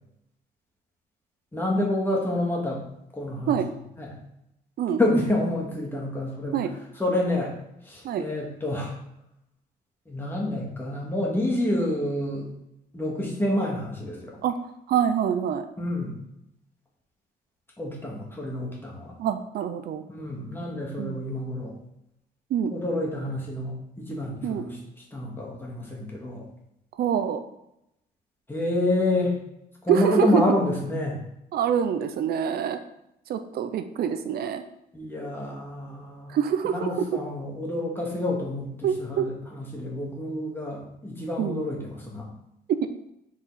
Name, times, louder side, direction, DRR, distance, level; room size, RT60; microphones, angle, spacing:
voice 1, 1.5-2.8 3.1-3.6 4.0-4.1 5.0-6.7 7.0-7.5 7.9-9.0 10.1-12.5 12.9-14.4 15.8-16.1 17.8-19.2 20.1-21.7 22.7-24.8 25.1-26.4 28.5-29.4 29.8-31.2 34.9-36.4 36.6-42.3, left 1 dB, 15° left, -2 dB, 1.9 m, -28 dB
voice 2, 14.9-15.7 19.2-20.0 21.0-21.2 22.5-22.7 24.4-24.6 27.0-27.4 29.9-30.4 31.5-32.8 33.3-34.6 36.3-37.1 38.8-39.3 41.4-41.6 42.7-42.9, right 8 dB, 70° right, 8 dB, 0.6 m, -25 dB
5.5 x 4.8 x 4.1 m, 0.81 s
cardioid pair, 120°, 17 cm